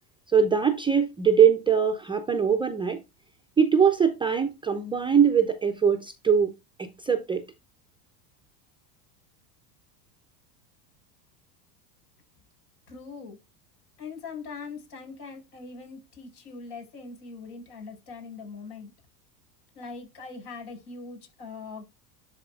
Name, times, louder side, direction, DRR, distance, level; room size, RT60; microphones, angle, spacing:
voice 1, 0.3-3.0 3.6-6.5 6.8-7.4, right 7 dB, 10° right, 0.5 m, -22 dB
voice 2, 12.9-13.4 14.0-18.9 19.7-21.8, left 4 dB, 70° left, 5.1 m, -41 dB
12.5 x 4.1 x 2.4 m
supercardioid pair, 120°, 48 cm